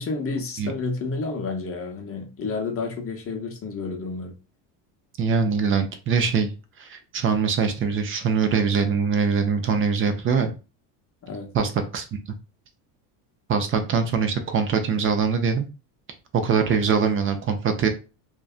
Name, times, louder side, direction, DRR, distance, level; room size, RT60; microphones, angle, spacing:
voice 1, 0.0-4.4 11.2-11.5, left 3 dB, 30° left, 0.7 m, -30 dB
voice 2, 5.2-6.5 6.8-10.5 11.5-12.0 13.5-15.7 16.3-17.9, right 5 dB, 30° right, 0.4 m, -23 dB
2.5 x 2.2 x 2.4 m
supercardioid pair, 100°, 46 cm